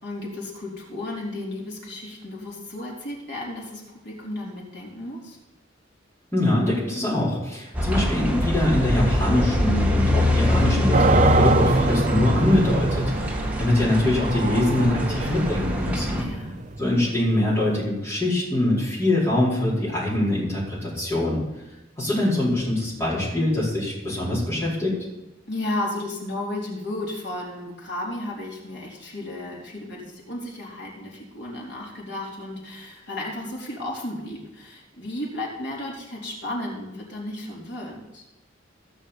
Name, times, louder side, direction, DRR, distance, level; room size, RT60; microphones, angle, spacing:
voice 1, 0.0-5.4 16.0-16.6 25.5-38.2, left 1 dB, 60° left, -3 dB, 4.2 m, -33 dB
voice 2, 6.3-16.2 16.8-21.4 22.0-24.9, left 1 dB, 15° left, -9 dB, 4.8 m, -23 dB
sound 1, 7.7-16.2, left 1 dB, 10° right, 2.0 m, -24 dB
sound 2, 10.9-17.8, right 3 dB, 40° right, 0.8 m, -25 dB
16.5 x 6.5 x 7.2 m, 0.97 s
head